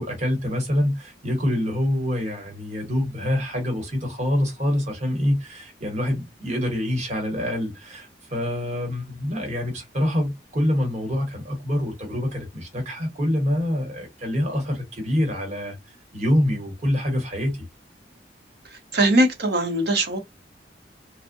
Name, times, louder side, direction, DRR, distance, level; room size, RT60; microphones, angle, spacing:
voice 1, 0.0-15.7 16.1-17.6, left 1 dB, 40° right, 1.0 m, -25 dB
voice 2, 18.9-20.2, right 1 dB, 65° right, 0.7 m, -20 dB
2.6 x 2.0 x 2.5 m
head